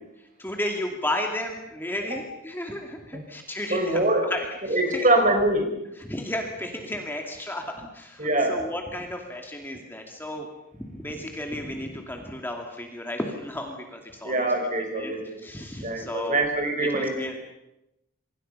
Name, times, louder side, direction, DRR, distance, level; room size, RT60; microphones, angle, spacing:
voice 1, 0.4-5.1 6.0-10.5 10.9-14.5 15.0-16.4 16.8-17.5, left 1 dB, 10° left, 2 dB, 2.4 m, -33 dB
voice 2, 3.7-4.3 4.7-5.7 8.2-8.6 14.2-15.4 15.8-17.1, right 1 dB, 35° right, 5 dB, 4.5 m, -24 dB
27.0 x 25.0 x 5.6 m, 0.87 s
head